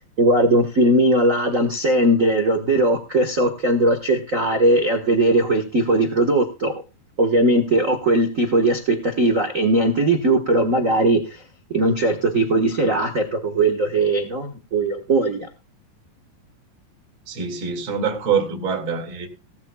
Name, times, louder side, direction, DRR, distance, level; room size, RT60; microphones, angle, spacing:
voice 1, 0.2-6.7 7.2-11.4 11.7-15.5, right 1 dB, 80° right, 0.7 m, -19 dB
voice 2, 17.3-19.3, right 6 dB, 40° right, 2.8 m, -24 dB
18.5 x 13.0 x 2.3 m
omnidirectional pair, 3.9 m